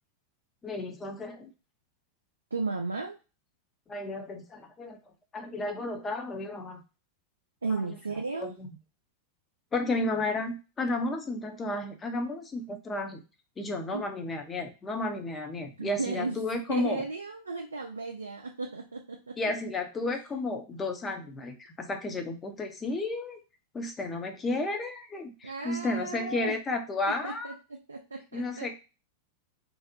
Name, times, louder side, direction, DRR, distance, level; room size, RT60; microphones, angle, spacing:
voice 1, 0.6-1.5 3.9-5.0 5.3-6.8 7.7-7.8 8.3-8.7 9.7-13.2 13.6-17.0 19.4-23.4 23.7-27.5 28.3-28.7, left 2 dB, 20° left, 4 dB, 0.5 m, -33 dB
voice 2, 2.5-3.2 7.6-8.5 13.9-14.0 15.8-19.4 25.4-26.6 27.1-28.7, right 3 dB, 75° right, 2 dB, 0.3 m, -35 dB
2.5 x 2.0 x 2.6 m, 0.31 s
figure-of-eight pair, 90°, 0 cm